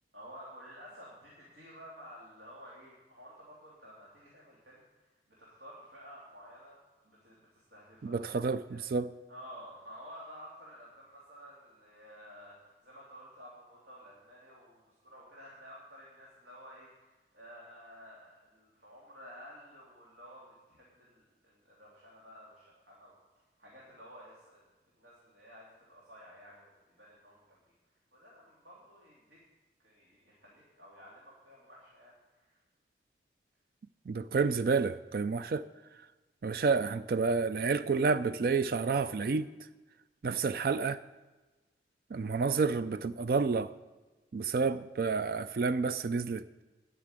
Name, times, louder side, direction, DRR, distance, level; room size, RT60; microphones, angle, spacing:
voice 1, 0.1-5.1 5.4-8.2 8.7-8.8 9.3-24.6 25.0-27.7 28.1-29.4 29.8-32.6, equal, 75° right, 3.0 m, -52 dB
voice 2, 8.0-9.1 34.1-35.7 36.4-39.5 40.2-41.0 42.1-43.7 44.3-46.6, right 4 dB, 55° right, 0.4 m, -30 dB
12.0 x 6.8 x 9.0 m
head